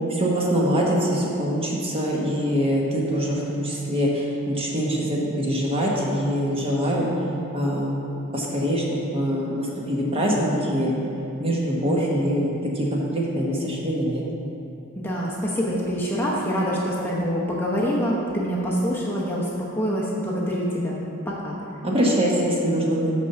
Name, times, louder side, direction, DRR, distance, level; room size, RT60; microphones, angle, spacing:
voice 1, 0.1-7.1 7.5-8.0 8.3-8.8 9.1-10.9 11.4-14.2 21.8-23.1, equal, 25° right, -3 dB, 1.2 m, -24 dB
voice 2, 14.9-19.5 19.8-21.0 21.3-21.5, equal, 10° left, -5 dB, 0.9 m, -25 dB
6.1 x 6.0 x 6.9 m, 2.8 s
head